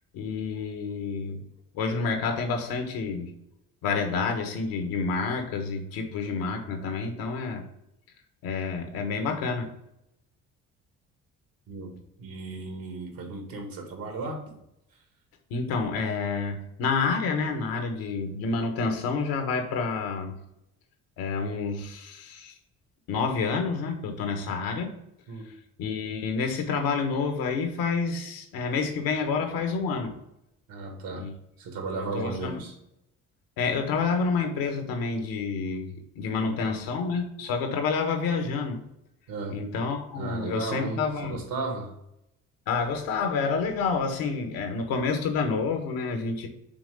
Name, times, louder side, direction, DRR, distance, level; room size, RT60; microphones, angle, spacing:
voice 1, 0.1-1.4 1.7-3.3 3.8-7.6 8.4-9.7 15.5-20.4 21.2-22.5 23.1-24.9 25.8-30.1 31.1-31.3 31.8-32.6 33.6-38.8 39.5-41.4 42.7-46.5, left 4 dB, 80° left, 5 dB, 1.3 m, -29 dB
voice 2, 11.7-14.6 25.3-25.5 30.7-31.3 31.6-32.7 36.3-36.6 39.3-39.6 40.2-42.0, right 3 dB, 75° right, 3 dB, 1.9 m, -35 dB
6.1 x 3.7 x 5.0 m, 0.83 s
supercardioid pair, 65°, 35 cm